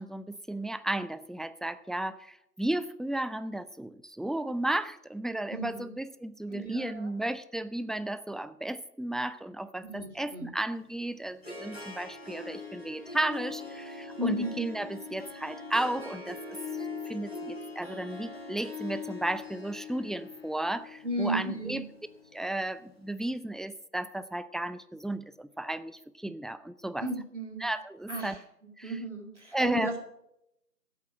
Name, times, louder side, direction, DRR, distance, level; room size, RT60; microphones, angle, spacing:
voice 1, 0.0-16.4 16.8-21.8 22.3-27.1 27.6-28.4 28.8-28.9 29.5-29.9, right 1 dB, ahead, 14 dB, 0.4 m, -34 dB
voice 2, 5.5-5.9 6.5-7.1 9.8-10.5 14.2-14.7 21.0-21.8 27.0-27.7 28.1-28.4 28.8-30.0, equal, 45° right, 3 dB, 2.3 m, -34 dB
Harp, 10.8-22.9, left 4 dB, 40° left, 1.6 m, -42 dB
13.0 x 8.3 x 5.8 m, 0.81 s
figure-of-eight pair, 175°, 48 cm